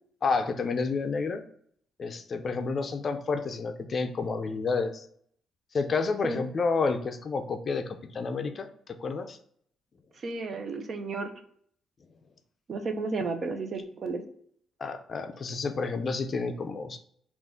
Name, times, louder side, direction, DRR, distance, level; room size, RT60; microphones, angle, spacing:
voice 1, 0.2-1.4 2.0-5.1 5.7-9.4 14.8-17.0, left 4 dB, 45° left, 8 dB, 0.4 m, -30 dB
voice 2, 10.2-11.3 12.7-14.2, right 3 dB, 50° right, 7 dB, 0.5 m, -32 dB
3.7 x 2.4 x 3.5 m, 0.64 s
cardioid pair, 90°, 0 cm